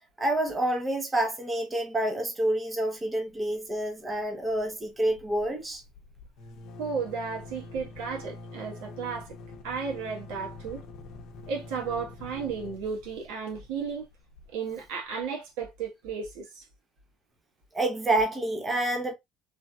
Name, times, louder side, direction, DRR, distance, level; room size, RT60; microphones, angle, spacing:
voice 1, 0.2-5.8 17.7-19.1, right 1 dB, 15° right, 0.7 m, -28 dB
sound 1, 3.3-3.8 4.1-4.2 4.5-15.1, left 3 dB, 60° left, 0.7 m, -46 dB
voice 2, 6.8-9.3 9.6-10.8 11.5-14.1 14.5-16.6, right 5 dB, 85° right, 1.2 m, -34 dB
3.2 x 2.7 x 2.3 m
cardioid pair, 140°, 0 cm